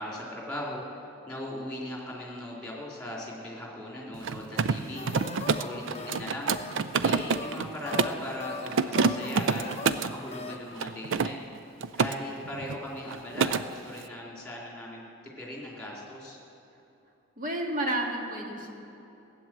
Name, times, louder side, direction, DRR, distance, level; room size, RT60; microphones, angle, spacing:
voice 1, 0.0-5.1 5.6-6.5 7.0-9.6 10.1-11.6 11.9-15.0 15.4-16.4, left 1 dB, 5° left, -4 dB, 3.0 m, -39 dB
Mechanisms, 4.1-8.3 8.7-10.2 10.8-12.2 12.5-12.8 13.1-13.6, right 5 dB, 55° right, 0.4 m, -27 dB
sound 1, 4.9-10.7, left 4 dB, 30° left, 0.6 m, -41 dB
voice 2, 17.4-18.7, right 1 dB, 40° right, 0 dB, 1.7 m, -31 dB
16.0 x 9.1 x 7.4 m, 2.9 s
head